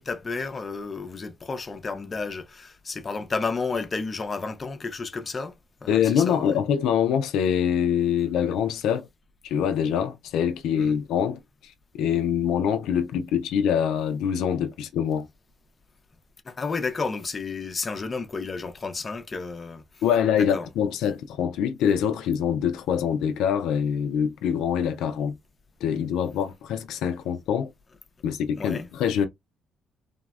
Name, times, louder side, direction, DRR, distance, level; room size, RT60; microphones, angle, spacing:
voice 1, 0.0-6.6 10.7-10.9 16.5-19.8 20.5-20.7 28.6-28.9, left 4 dB, 30° left, 0.5 m, -32 dB
voice 2, 5.9-9.1 9.4-15.3 20.0-25.4 25.8-27.7 28.2-29.3, left 8 dB, 85° left, 0.3 m, -24 dB
3.4 x 2.0 x 2.3 m
cardioid pair, 100°, 0 cm